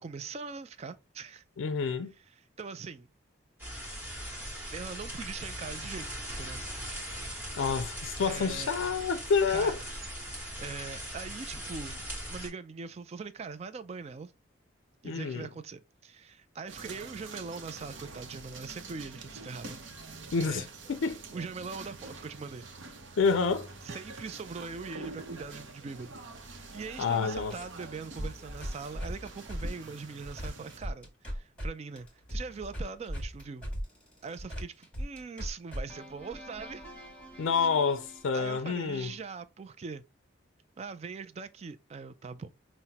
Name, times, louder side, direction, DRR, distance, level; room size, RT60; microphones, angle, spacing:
voice 1, 0.0-1.4 2.6-3.1 4.7-6.1 6.4-6.6 8.2-8.7 9.5-9.9 10.3-12.0 12.3-14.3 15.0-19.8 20.4-20.7 21.3-22.6 23.8-26.2 26.7-33.7 34.2-36.8 37.3-37.5 38.3-40.0 40.8-42.5, right 4 dB, 35° right, 0.3 m, -41 dB
voice 2, 1.6-2.1 7.6-9.8 15.0-15.5 20.3-21.2 23.2-23.7 27.0-27.5 37.4-39.1, left 5 dB, 85° left, 0.4 m, -28 dB
sound 1, 3.6-12.5, equal, 10° right, 1.4 m, -40 dB
sound 2, 16.7-30.8, right 3 dB, 70° right, 0.7 m, -46 dB
sound 3, 27.3-31.7 32.0-39.2, equal, 5° left, 1.5 m, -40 dB
5.6 x 2.1 x 2.8 m
head